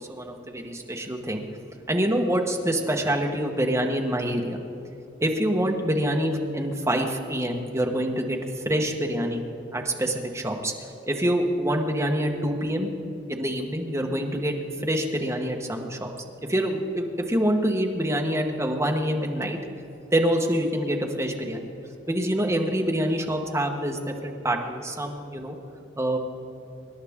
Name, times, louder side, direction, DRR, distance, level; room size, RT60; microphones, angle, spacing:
voice 1, 0.0-1.4 1.9-4.6 5.2-8.4 8.6-9.4 9.7-10.7 11.1-12.9 13.3-14.5 14.8-16.1 16.5-19.6 20.1-21.7 22.1-25.6 26.0-26.2, right 1 dB, 15° right, 1 dB, 1.2 m, -26 dB
25.0 x 11.0 x 3.6 m, 2.9 s
head